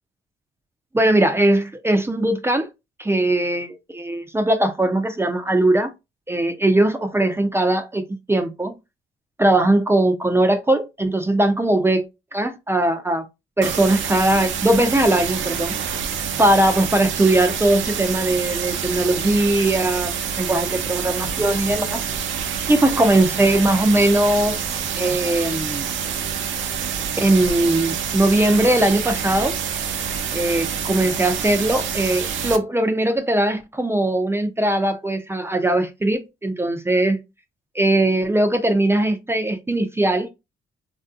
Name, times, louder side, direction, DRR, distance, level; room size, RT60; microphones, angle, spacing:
voice 1, 0.9-2.7 3.0-5.9 6.3-8.7 9.4-12.0 12.3-13.3 13.6-15.8 16.4-22.0 22.7-24.6 25.0-25.9 27.2-29.6 30.3-37.2 37.7-40.3, right 1 dB, 10° right, 0.5 m, -20 dB
sound 1, 13.6-32.6, right 7 dB, 75° right, 0.6 m, -27 dB
3.3 x 2.6 x 2.4 m
cardioid pair, 90°, 20 cm